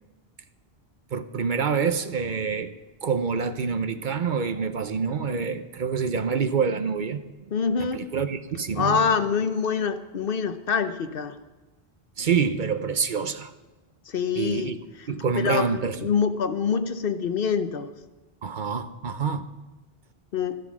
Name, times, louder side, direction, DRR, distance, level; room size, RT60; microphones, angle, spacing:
voice 1, 1.1-2.7 3.0-7.2 7.9-9.1 12.2-13.5 14.4-14.8 15.1-16.0 18.4-19.5, right 6 dB, 55° right, 0.9 m, -26 dB
voice 2, 7.5-8.0 8.8-11.4 14.1-15.1 15.4-17.9 20.3-20.6, left 6 dB, 65° left, 1.0 m, -25 dB
13.0 x 12.5 x 6.1 m
omnidirectional pair, 1.0 m